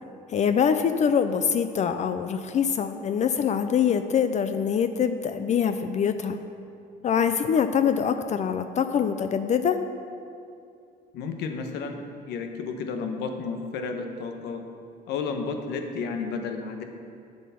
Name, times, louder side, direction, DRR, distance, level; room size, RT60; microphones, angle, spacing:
voice 1, 0.3-6.4 7.0-9.8, left 7 dB, 45° left, 9 dB, 0.5 m, -24 dB
voice 2, 11.1-14.6 15.1-16.8, left 4 dB, 85° left, 5 dB, 1.1 m, -32 dB
8.4 x 7.7 x 5.8 m, 2.5 s
cardioid pair, 110°, 17 cm